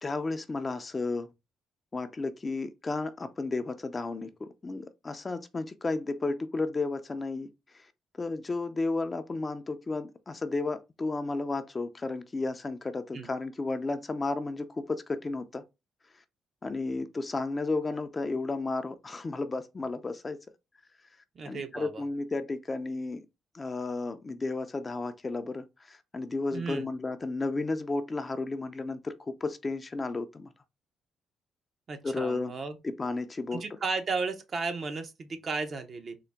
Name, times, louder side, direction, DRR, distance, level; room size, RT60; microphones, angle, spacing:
voice 1, 0.0-1.3 1.9-7.5 8.2-15.6 16.6-20.4 21.5-23.2 23.5-30.5 32.0-32.5 32.8-33.6, left 3 dB, 30° left, 0.4 m, -33 dB
voice 2, 21.4-22.0 26.5-26.9 31.9-32.8 33.5-36.2, right 4 dB, 45° right, 0.7 m, -34 dB
3.8 x 2.1 x 3.3 m
cardioid pair, 90°, 0 cm